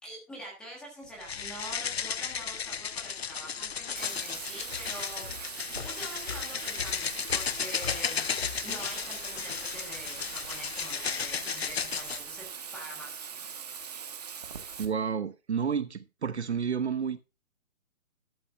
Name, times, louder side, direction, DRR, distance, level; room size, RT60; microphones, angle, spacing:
voice 1, 0.0-5.3 5.8-8.3 8.6-12.5 12.7-13.5, right 1 dB, ahead, 1.4 m, -45 dB
sound 1, 1.2-12.2, left 7 dB, 50° left, 0.6 m, -34 dB
sound 2, 3.4-9.9, left 5 dB, 85° left, 3.9 m, -44 dB
Bathtub (filling or washing), 3.9-14.8, right 7 dB, 30° right, 1.4 m, -41 dB
voice 2, 14.8-17.2, right 6 dB, 55° right, 0.9 m, -30 dB
13.0 x 12.0 x 2.5 m
hypercardioid pair, 175°, 41 cm